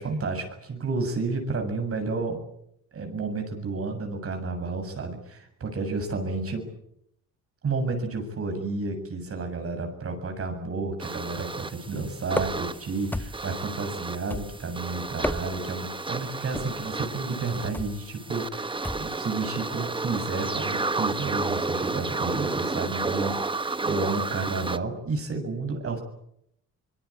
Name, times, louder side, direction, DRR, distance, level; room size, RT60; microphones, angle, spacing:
voice 1, 0.0-2.4 2.9-6.7 7.6-26.0, right 3 dB, 50° right, 5 dB, 7.3 m, -31 dB
sound 1, 11.0-24.8, right 3 dB, 15° right, 1.3 m, -32 dB
sound 2, 12.4-12.8 13.1-13.6 14.3-14.8 15.1-15.7 16.5-16.9 17.7-18.0 18.8-19.2, left 1 dB, 5° left, 1.2 m, -32 dB
25.0 x 22.0 x 8.7 m, 0.74 s
cardioid pair, 90°, 30 cm